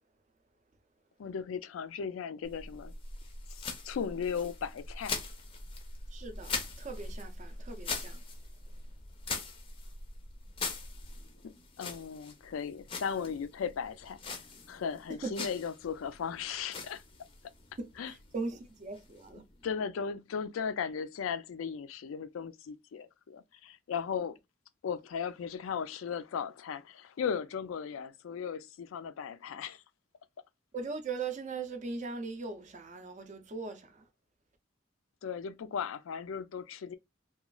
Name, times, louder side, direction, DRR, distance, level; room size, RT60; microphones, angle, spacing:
voice 1, 1.2-2.9 3.5-5.2 11.4-14.4 14.7-17.0 18.0-18.1 19.6-24.4 24.8-29.8 35.2-37.0, left 6 dB, 85° left, 0.4 m, -37 dB
sound 1, 2.4-19.7, left 4 dB, 25° left, 0.5 m, -42 dB
voice 2, 6.1-8.2 15.1-15.3 17.8-19.4 30.7-34.1, right 4 dB, 40° right, 0.5 m, -40 dB
3.0 x 2.3 x 2.3 m
head